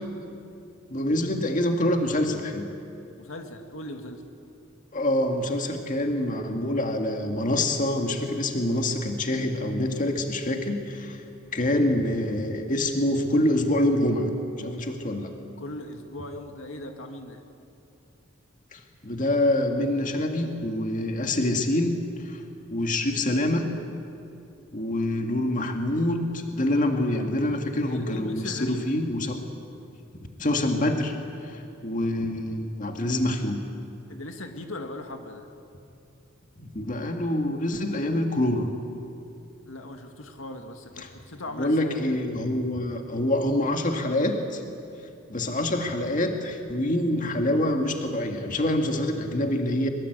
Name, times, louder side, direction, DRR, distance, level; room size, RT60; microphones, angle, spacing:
voice 1, 0.9-2.7 4.9-11.2 11.5-14.3 14.6-15.3 18.7-22.4 22.7-23.6 24.7-29.4 30.4-31.1 31.4-33.6 36.6-38.7 41.0-41.1 41.6-44.6 45.3-49.9, left 1 dB, 40° left, 4 dB, 2.0 m, -26 dB
voice 2, 3.2-4.2 15.6-17.4 27.8-28.9 34.1-35.5 39.7-42.2, left 1 dB, 80° left, 5 dB, 2.1 m, -38 dB
23.5 x 23.0 x 8.0 m, 2.7 s
head